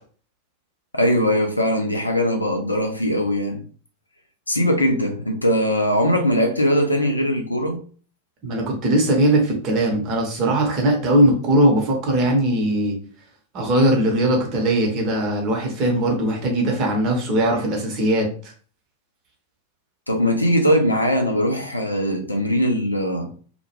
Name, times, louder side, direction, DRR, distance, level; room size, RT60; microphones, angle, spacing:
voice 1, 0.9-3.6 4.5-7.8 20.1-23.3, equal, 85° left, 0.4 m, -20 dB
voice 2, 8.4-13.0 13.5-18.3, right 1 dB, 35° right, 0.8 m, -20 dB
2.2 x 2.1 x 2.9 m
figure-of-eight pair, 90°, 0 cm